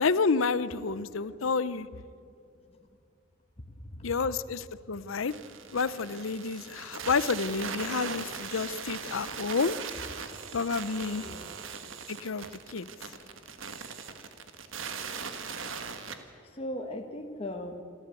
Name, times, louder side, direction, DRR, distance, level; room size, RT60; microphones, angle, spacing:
voice 1, 0.0-1.9 4.0-5.3 5.7-9.8 10.5-11.2 12.1-12.9, left 4 dB, 75° left, 16 dB, 0.7 m, -29 dB
voice 2, 2.2-3.0 3.6-4.1 10.3-10.5 11.2-11.6 12.0-12.1 13.1-13.9 16.4-17.8, left 1 dB, 30° left, 4 dB, 1.3 m, -41 dB
sound 1, 5.3-16.2, right 6 dB, 70° right, 1.6 m, -40 dB
27.0 x 13.5 x 8.4 m, 2.6 s
head